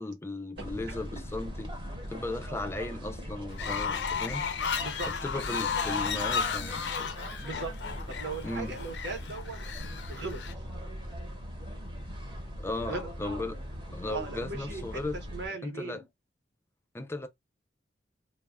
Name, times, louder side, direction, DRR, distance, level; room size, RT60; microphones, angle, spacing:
voice 1, 0.0-1.7 2.1-4.5 5.2-6.9 8.4-8.8 12.6-13.6 13.9-15.2 15.6-16.0 16.9-17.3, left 2 dB, 15° left, 0.4 m, -36 dB
sound 1, 0.6-15.5, equal, 30° right, 0.8 m, -40 dB
Fowl, 3.5-10.5, left 6 dB, 70° left, 0.5 m, -34 dB
voice 2, 7.4-7.7 8.1-9.6 10.1-10.4 12.9-13.1 14.1-16.1, right 3 dB, 70° right, 0.9 m, -38 dB
2.2 x 2.0 x 3.4 m
head